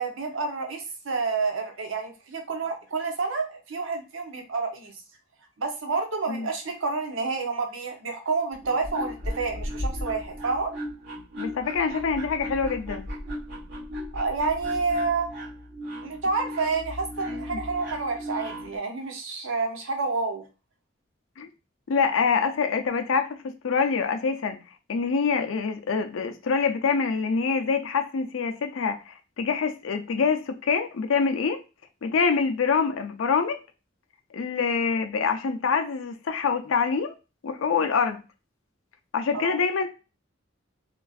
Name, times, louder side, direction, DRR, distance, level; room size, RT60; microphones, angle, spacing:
voice 1, 0.0-4.9 5.6-10.7 14.1-15.3 16.0-20.5 37.8-37.9 39.3-39.5, right 4 dB, 80° right, 0.7 m, -29 dB
sound 1, 8.5-18.8, left 1 dB, 65° right, 1.5 m, -36 dB
voice 2, 11.4-13.1 17.3-17.6 21.4-21.5 21.9-24.6 24.9-31.6 32.0-33.6 34.3-37.1 37.4-38.2 39.1-39.9, left 5 dB, 85° left, 0.5 m, -25 dB
2.9 x 2.5 x 2.3 m
head